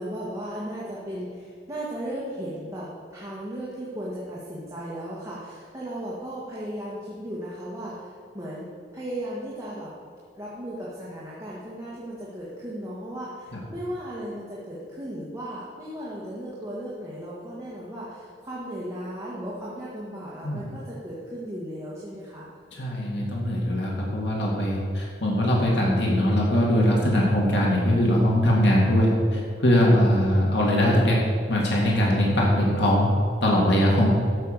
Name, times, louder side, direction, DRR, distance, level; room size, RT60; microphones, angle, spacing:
voice 1, 0.0-9.9 10.3-22.5, equal, 15° right, -6 dB, 1.7 m, -36 dB
voice 2, 22.8-31.2 31.5-33.1 33.4-34.1, equal, 75° left, -3 dB, 2.1 m, -21 dB
13.5 x 5.7 x 6.8 m, 2.1 s
head